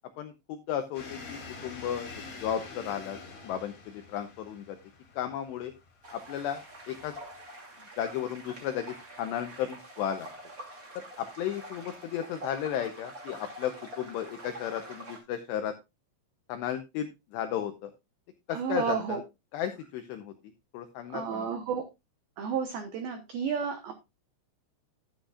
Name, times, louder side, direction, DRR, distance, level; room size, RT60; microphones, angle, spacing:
voice 1, 0.2-4.8 5.1-5.7 6.1-7.1 8.0-10.3 11.0-15.7 16.5-17.9 18.5-19.2 19.5-21.5, left 10 dB, 85° left, 7 dB, 2.4 m, -34 dB
sound 1, 0.9-7.4, left 4 dB, 60° left, 1.2 m, -46 dB
sound 2, 6.0-15.2, right 1 dB, 30° right, 1.5 m, -46 dB
voice 2, 18.5-19.2 21.1-21.8 22.4-23.9, right 7 dB, 90° right, 6 dB, 2.1 m, -31 dB
11.5 x 10.5 x 2.4 m, 0.23 s
omnidirectional pair, 5.9 m